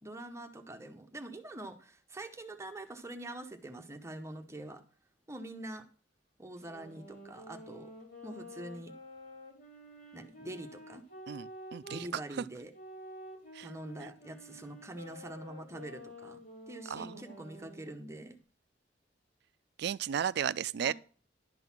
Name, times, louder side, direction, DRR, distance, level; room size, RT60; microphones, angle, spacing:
voice 1, 0.0-4.8 5.3-5.8 6.4-7.9 8.2-8.9 10.1-11.0 11.9-12.7 13.6-16.4 16.7-18.4 20.8-20.9, right 1 dB, 15° right, 1.0 m, -44 dB
sound 1, 6.6-12.1 12.7-17.9, equal, 50° left, 3.7 m, -50 dB
voice 2, 11.3-12.2 13.5-13.7 16.9-17.2 19.8-20.9, right 8 dB, 65° right, 0.4 m, -34 dB
11.5 x 3.9 x 7.2 m
head